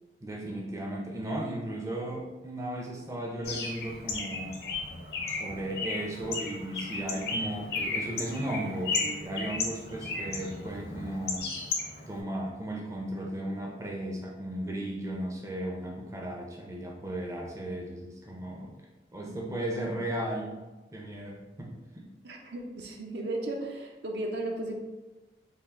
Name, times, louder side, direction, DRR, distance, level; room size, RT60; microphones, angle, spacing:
voice 1, 0.2-4.5 5.3-11.5 12.1-18.7 19.1-20.6 20.9-22.0, right 1 dB, 15° right, -2 dB, 0.4 m, -35 dB
Bird, 3.4-12.2, left 3 dB, 60° left, 0.6 m, -35 dB
voice 2, 22.2-24.7, right 2 dB, 70° right, 1 dB, 0.5 m, -35 dB
3.4 x 2.4 x 3.5 m, 1.1 s
head